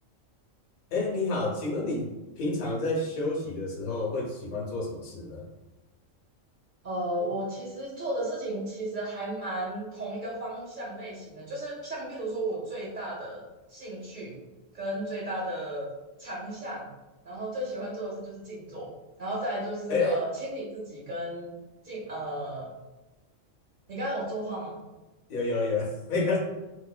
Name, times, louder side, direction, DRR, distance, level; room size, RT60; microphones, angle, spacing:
voice 1, 0.9-5.5 19.9-20.2 25.3-26.4, left 3 dB, 90° left, -1 dB, 1.2 m, -29 dB
voice 2, 6.8-13.4 13.7-14.4 14.7-15.9 16.2-16.9 17.2-18.9 19.2-21.5 21.8-22.7 23.9-24.8, right 1 dB, 40° right, -4 dB, 1.0 m, -34 dB
3.3 x 3.0 x 2.2 m, 1.0 s
omnidirectional pair, 1.4 m